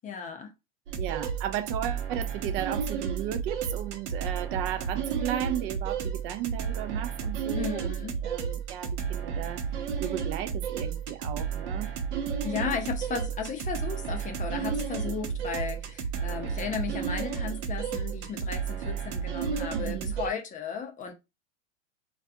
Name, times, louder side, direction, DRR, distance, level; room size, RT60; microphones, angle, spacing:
voice 1, 0.0-0.5 7.5-8.1 12.4-21.1, left 6 dB, 20° left, 0.5 m, -35 dB
sound 1, 0.9-20.3, right 7 dB, 70° right, 0.8 m, -32 dB
voice 2, 1.0-11.9 19.7-20.1, right 11 dB, 45° right, 0.4 m, -35 dB
2.4 x 2.2 x 2.6 m
hypercardioid pair, 100°, 38 cm